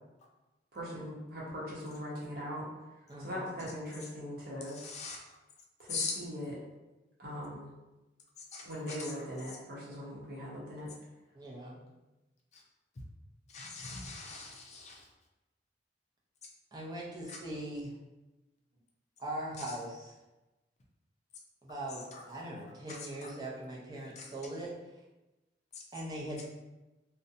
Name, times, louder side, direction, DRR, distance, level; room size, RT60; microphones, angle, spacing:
voice 1, 0.7-2.7 3.2-4.8 5.8-6.5 7.2-7.7 8.6-10.9, equal, 55° right, -6 dB, 0.8 m, -40 dB
voice 2, 3.1-3.5 11.3-11.9 16.7-17.9 19.2-20.1 21.6-24.7 25.9-26.4, right 1 dB, 20° right, -4 dB, 0.5 m, -41 dB
voice 3, 4.7-5.2 5.9-6.2 8.4-9.1 12.5-12.6 13.5-15.1 17.3-17.4 19.6-19.7 22.1-22.2 22.9-23.3 24.2-24.3 25.7-25.8, left 4 dB, 40° left, -1 dB, 0.4 m, -41 dB
2.5 x 2.1 x 2.6 m, 1.1 s
head